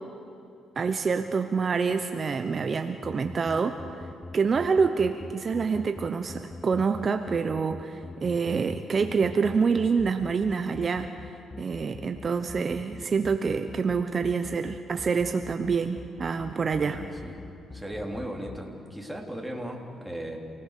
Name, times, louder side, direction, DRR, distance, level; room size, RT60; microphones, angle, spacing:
voice 1, 0.8-4.1 4.3-11.1 11.6-17.0, right 5 dB, 40° right, 8 dB, 0.9 m, -27 dB
sound 1, 3.0-18.6, left 3 dB, 20° left, 0.6 m, -42 dB
voice 2, 16.8-17.4 17.7-20.4, equal, ahead, 1 dB, 3.5 m, -37 dB
28.0 x 18.5 x 6.7 m, 2.8 s
cardioid pair, 90°, 0 cm